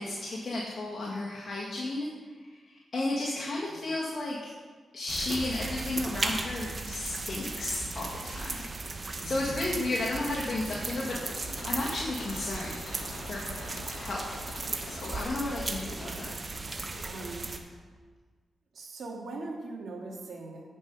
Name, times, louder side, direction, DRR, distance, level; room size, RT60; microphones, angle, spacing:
voice 1, 0.0-2.1 2.7-4.5 4.9-8.6 9.2-12.7 13.2-13.6 13.9-14.4 14.9-16.3, left 2 dB, 50° left, -5 dB, 1.7 m, -33 dB
sound 1, 5.1-17.6, right 3 dB, 40° right, 1.0 m, -36 dB
voice 2, 9.2-9.5 16.0-16.2 17.0-17.8 18.7-20.8, right 3 dB, 65° right, -1 dB, 1.9 m, -41 dB
sound 2, 10.3-17.3, left 3 dB, 90° left, 0.9 m, -46 dB
9.5 x 5.3 x 5.4 m, 1.4 s
cardioid pair, 65°, 0 cm